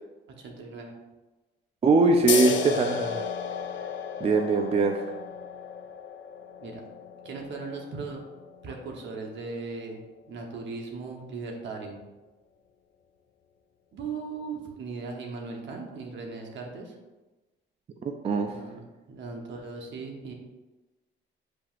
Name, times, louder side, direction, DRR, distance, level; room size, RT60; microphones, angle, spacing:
voice 1, 0.3-0.9 6.6-6.8 7.2-8.2 8.6-12.0 13.9-17.0 18.5-20.3, right 4 dB, 70° right, 1 dB, 0.9 m, -38 dB
voice 2, 1.8-3.2 4.2-5.0 18.0-18.5, right 3 dB, 30° right, 5 dB, 0.4 m, -22 dB
sound 1, 2.3-9.4, left 7 dB, 70° left, 0.5 m, -34 dB
7.5 x 2.8 x 2.4 m, 1.2 s
cardioid pair, 90°, 20 cm